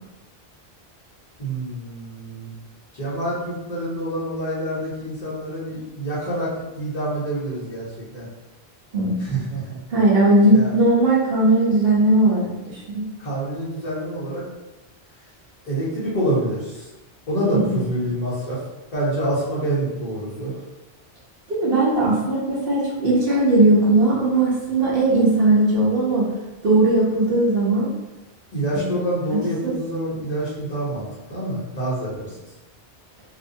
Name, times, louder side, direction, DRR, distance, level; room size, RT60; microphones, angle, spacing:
voice 1, 1.4-2.5 2.9-7.9 8.1-8.3 9.2-9.8 10.5-10.7 13.2-14.4 15.6-16.9 17.3-18.6 18.9-20.6 28.5-32.3, right 1 dB, 45° left, -8 dB, 0.7 m, -26 dB
voice 2, 8.9-9.4 9.9-13.1 17.5-17.8 21.5-26.3 26.6-27.9 28.7-28.9 29.3-29.7, right 2 dB, 65° right, -5 dB, 0.9 m, -18 dB
2.6 x 2.1 x 2.6 m, 1.0 s
omnidirectional pair, 1.1 m